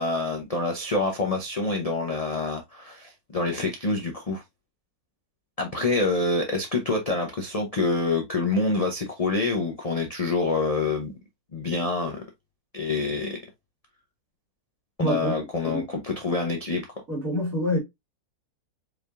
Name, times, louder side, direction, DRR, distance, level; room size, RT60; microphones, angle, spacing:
voice 1, 0.0-4.4 5.6-11.1 11.5-12.2 12.7-13.4 15.0-16.9, left 3 dB, 45° left, 0.5 m, -26 dB
voice 2, 15.0-15.9 17.1-17.8, equal, 55° right, 2.2 m, -27 dB
4.8 x 3.4 x 2.4 m
omnidirectional pair, 1.7 m